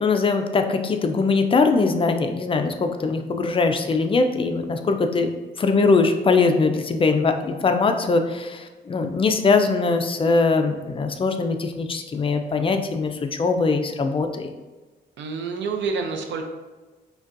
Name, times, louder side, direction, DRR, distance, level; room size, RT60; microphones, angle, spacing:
voice 1, 0.0-5.3 5.6-14.5, left 4 dB, 30° left, 6 dB, 0.3 m, -21 dB
voice 2, 15.2-16.4, right 5 dB, 80° right, 4 dB, 0.5 m, -28 dB
5.1 x 2.2 x 2.5 m, 1.2 s
cardioid pair, 105°, 18 cm